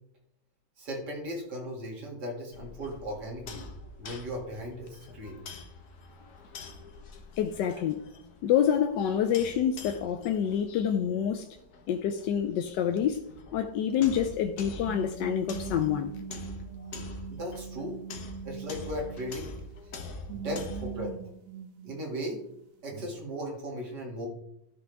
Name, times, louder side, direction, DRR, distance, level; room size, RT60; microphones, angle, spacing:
voice 1, 0.8-3.7 4.0-5.4 17.3-18.0 18.4-19.5 19.8-21.1 21.8-22.4 22.8-24.3, equal, 70° right, 2.9 m, -37 dB
sound 1, 2.5-21.0, left 3 dB, 65° left, 1.6 m, -45 dB
voice 2, 7.4-8.1 8.4-11.5 11.9-13.2 13.5-16.1, left 9 dB, 85° left, 1.3 m, -27 dB
sound 2, 13.9-14.2 14.8-20.0 20.3-22.6 22.9-23.1, right 7 dB, 55° right, 1.4 m, -42 dB
12.5 x 6.0 x 3.5 m
omnidirectional pair, 1.9 m